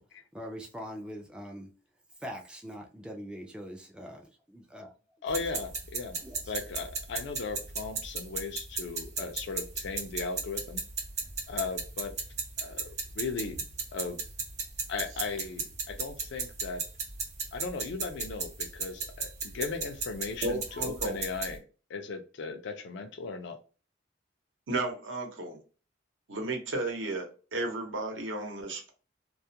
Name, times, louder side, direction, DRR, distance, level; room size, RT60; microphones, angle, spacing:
voice 1, 0.3-1.7 2.2-5.0 6.2-6.5, equal, 5° right, 0.3 m, -42 dB
voice 2, 5.2-10.8 11.5-12.1 12.6-13.6 13.9-14.2 14.9-16.8 17.5-21.6 21.9-23.6, left 4 dB, 65° left, 0.4 m, -37 dB
sound 1, 5.3-21.6, right 4 dB, 40° right, 0.8 m, -36 dB
voice 3, 20.4-21.2 24.7-25.6 26.3-28.9, right 2 dB, 80° right, 0.8 m, -33 dB
2.3 x 2.1 x 2.7 m
head